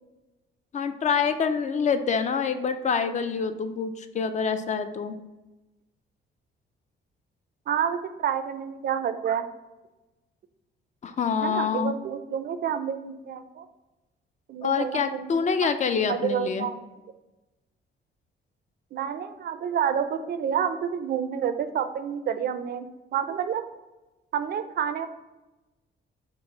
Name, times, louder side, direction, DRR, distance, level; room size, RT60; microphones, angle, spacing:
voice 1, 0.7-5.2 11.0-11.9 14.6-16.7, left 6 dB, 35° left, 10 dB, 0.4 m, -26 dB
voice 2, 7.7-9.5 11.4-13.7 14.5-15.7 16.0-16.8 18.9-23.6 24.3-25.1, right 8 dB, 55° right, 10 dB, 0.4 m, -29 dB
5.4 x 2.0 x 3.8 m, 1.1 s
cardioid pair, 90°, 20 cm